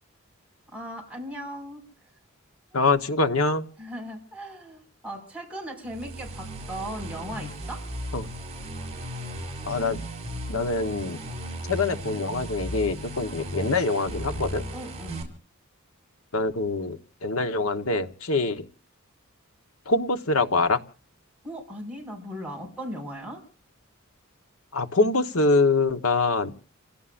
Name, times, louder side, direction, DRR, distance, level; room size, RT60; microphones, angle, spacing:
voice 1, 0.7-1.8 2.7-2.8 3.8-7.9 14.7-15.3 21.4-23.4, equal, 5° right, -1 dB, 5.8 m, -38 dB
voice 2, 2.7-3.7 8.1-8.3 9.6-10.0 10.5-11.2 11.7-14.6 16.3-18.7 19.8-20.8 24.7-26.5, left 3 dB, 75° left, 8 dB, 1.3 m, -24 dB
sound 1, 5.9-15.2, equal, 30° right, 5.8 m, -36 dB
29.5 x 17.0 x 2.6 m, 0.39 s
head